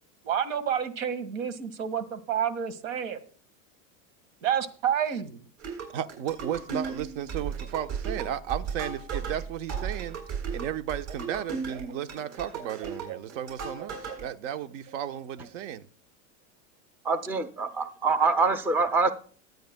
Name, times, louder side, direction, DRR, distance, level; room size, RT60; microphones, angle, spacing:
voice 1, 0.2-3.3 4.4-5.4 11.3-11.4 11.7-12.0 12.4-13.2 13.8-14.2, right 8 dB, 90° right, 1.8 m, -30 dB
sound 1, 5.6-14.2, right 6 dB, 50° right, 7.4 m, -35 dB
voice 2, 5.9-10.2 10.5-15.9, right 10 dB, 70° right, 1.1 m, -34 dB
voice 3, 17.0-19.1, right 4 dB, 5° right, 0.4 m, -25 dB
24.0 x 9.4 x 2.2 m
supercardioid pair, 145°, 38 cm